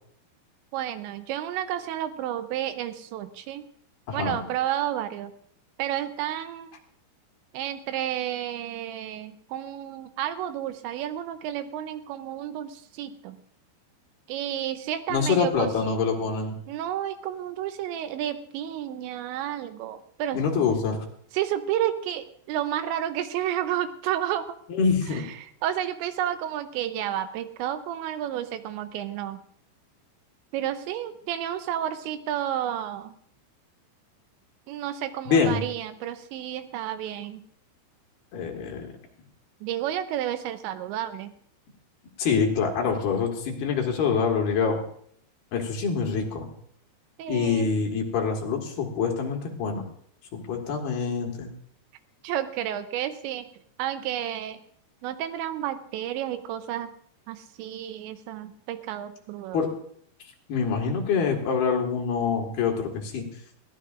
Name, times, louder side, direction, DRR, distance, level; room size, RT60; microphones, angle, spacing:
voice 1, 0.7-3.7 4.1-5.3 5.8-6.8 7.5-13.4 14.3-16.0 16.7-20.4 21.3-24.6 25.1-29.4 30.5-33.1 34.7-37.5 39.6-41.3 47.2-47.7 52.2-53.5 53.8-54.6 55.0-56.9 57.3-59.6, right 11 dB, 80° right, 10 dB, 2.9 m, -31 dB
voice 2, 4.1-4.4 15.1-16.6 20.3-21.0 24.7-25.2 35.3-35.6 38.3-38.9 42.2-44.8 45.5-46.5 47.3-49.8 50.3-51.5 59.5-59.7 60.5-63.2, left 5 dB, 65° left, 1 dB, 3.3 m, -25 dB
21.0 x 16.5 x 2.5 m, 0.63 s
omnidirectional pair, 5.4 m